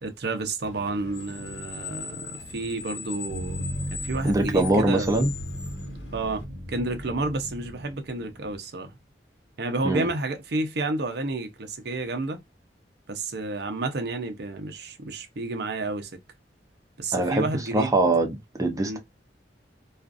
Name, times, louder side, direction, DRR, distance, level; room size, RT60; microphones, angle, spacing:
voice 1, 0.0-5.2 6.1-6.4 6.7-9.0 9.6-12.4 13.1-16.1 17.0-18.0 18.8-19.0, right 2 dB, 65° right, 0.7 m, -30 dB
Screech, 0.6-6.4, left 5 dB, 80° left, 0.9 m, -40 dB
sound 1, 3.3-8.6, equal, 45° right, 1.0 m, -36 dB
voice 2, 4.2-5.3 9.8-10.1 17.1-19.0, right 2 dB, 20° right, 0.5 m, -23 dB
2.4 x 2.4 x 2.4 m
head